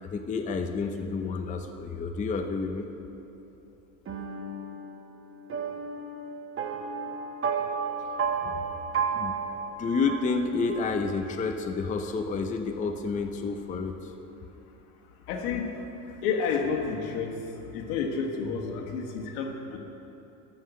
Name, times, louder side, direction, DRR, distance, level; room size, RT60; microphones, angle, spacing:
voice 1, 0.0-2.9 8.4-8.7 9.1-9.4 9.8-14.1, left 4 dB, 15° left, 5 dB, 0.5 m, -30 dB
sound 1, 4.1-11.0, right 5 dB, 25° right, 1.1 m, -33 dB
voice 2, 15.3-15.7 16.1-17.4 17.7-19.8, left 5 dB, 70° left, 2 dB, 1.6 m, -30 dB
12.5 x 5.8 x 6.7 m, 3.0 s
supercardioid pair, 100°, 47 cm